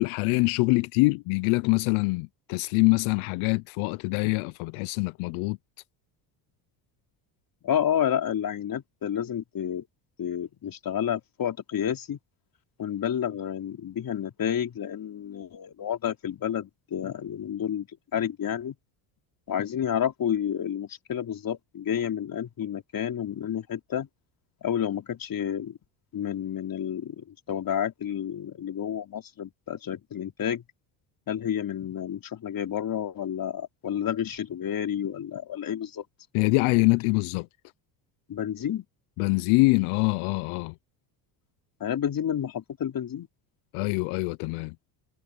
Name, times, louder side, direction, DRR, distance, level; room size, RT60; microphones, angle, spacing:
voice 1, 0.0-5.6 36.3-37.5 39.2-40.7 43.7-44.7, left 26 dB, 75° left, 0.7 m, -24 dB
voice 2, 7.6-9.8 10.2-12.2 12.8-17.9 18.1-18.8 19.5-24.1 24.6-25.8 26.1-30.6 31.3-36.0 38.3-38.8 41.8-43.3, left 9 dB, 45° left, 3.8 m, -30 dB
supercardioid pair, 100°, 49 cm